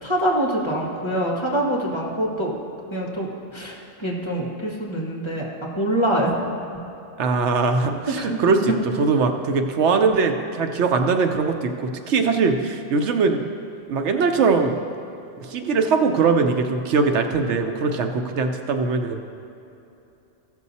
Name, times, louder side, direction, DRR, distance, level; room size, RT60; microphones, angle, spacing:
voice 1, 0.0-2.5 2.9-3.3 3.5-5.5 5.8-6.3 8.1-8.4, right 1 dB, 25° left, -3 dB, 1.5 m, -24 dB
voice 2, 7.2-13.4 13.9-14.8 15.4-19.2, right 4 dB, 80° right, 6 dB, 1.0 m, -21 dB
15.0 x 6.5 x 4.1 m, 2.9 s
omnidirectional pair, 1.2 m